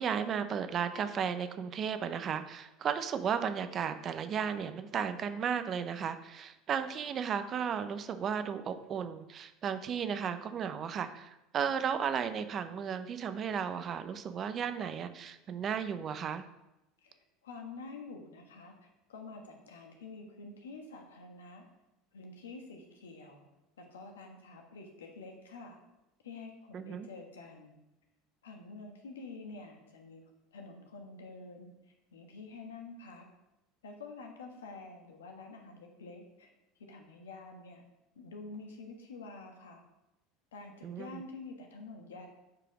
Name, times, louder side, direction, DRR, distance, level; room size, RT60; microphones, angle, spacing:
voice 1, 0.0-16.5 26.7-27.1 40.8-41.2, right 7 dB, 40° right, 11 dB, 0.7 m, -34 dB
voice 2, 17.0-21.6 22.1-23.4 23.8-25.8 26.2-27.8 28.4-30.2 30.5-33.3 33.8-36.5 36.8-37.8 38.1-39.8 40.5-42.3, left 3 dB, 90° left, 3 dB, 1.3 m, -48 dB
7.8 x 4.9 x 4.9 m, 0.94 s
hypercardioid pair, 85°, 0 cm